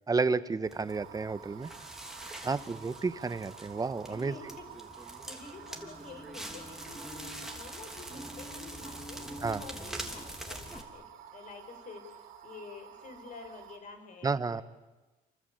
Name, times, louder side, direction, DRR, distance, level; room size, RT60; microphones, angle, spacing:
voice 1, 0.1-1.7 2.4-4.3 9.4-9.6 14.2-14.6, right 4 dB, 20° right, 13 dB, 1.2 m, -31 dB
Crackle, 0.6-10.8, right 1 dB, 5° right, 3.3 m, -44 dB
sound 1, 0.9-13.8, right 9 dB, 80° right, 3.9 m, -51 dB
voice 2, 4.0-4.6 4.9-14.4, left 4 dB, 50° left, 6 dB, 6.1 m, -49 dB
29.0 x 24.5 x 8.1 m, 1.1 s
cardioid pair, 110°, 17 cm